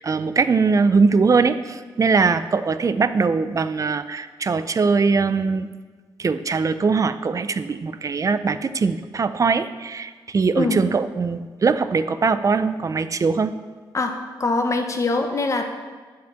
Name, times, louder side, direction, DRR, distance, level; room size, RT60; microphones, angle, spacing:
voice 1, 0.0-5.7 6.2-13.5, right 4 dB, 40° right, 12 dB, 0.4 m, -21 dB
voice 2, 14.4-15.6, left 3 dB, 40° left, 5 dB, 1.0 m, -22 dB
7.8 x 5.5 x 5.8 m, 1.4 s
cardioid pair, 75°, 8 cm